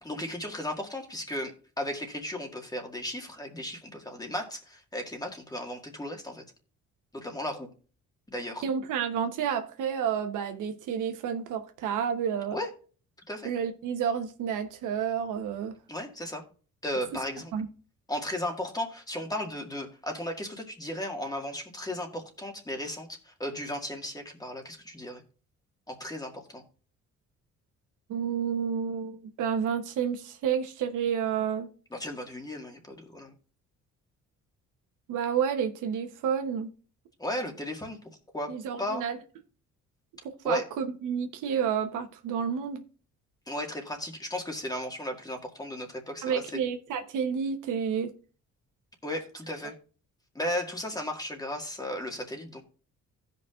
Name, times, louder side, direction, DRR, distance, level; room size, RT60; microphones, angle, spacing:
voice 1, 0.0-6.4 7.1-7.7 8.3-8.6 12.5-12.7 13.3-13.5 15.9-16.4 16.8-17.5 18.1-25.2 25.9-26.6 31.9-33.3 37.2-38.0 38.3-38.5 38.8-39.1 40.4-40.7 43.5-46.6 49.0-49.7 50.3-52.6, left 1 dB, 10° left, 1.9 m, -35 dB
voice 2, 8.6-12.6 13.4-15.7 17.5-17.7 28.1-31.7 35.1-36.7 38.5-39.2 40.4-42.8 46.2-48.1, right 7 dB, 85° right, 1.1 m, -30 dB
16.0 x 5.4 x 2.5 m
cardioid pair, 90°, 30 cm